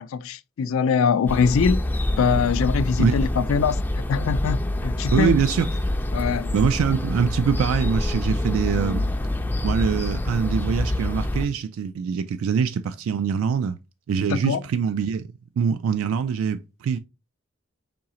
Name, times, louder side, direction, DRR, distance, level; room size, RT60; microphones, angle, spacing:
voice 1, 0.0-1.8 2.1-5.3 6.1-6.5 14.3-14.6, left 6 dB, 85° left, 0.3 m, -23 dB
sound 1, 1.3-11.5, left 1 dB, 10° left, 0.3 m, -26 dB
voice 2, 5.1-5.7 6.5-9.1 9.6-13.8 14.1-15.3 15.6-17.0, right 6 dB, 85° right, 0.3 m, -24 dB
4.7 x 3.7 x 2.9 m
head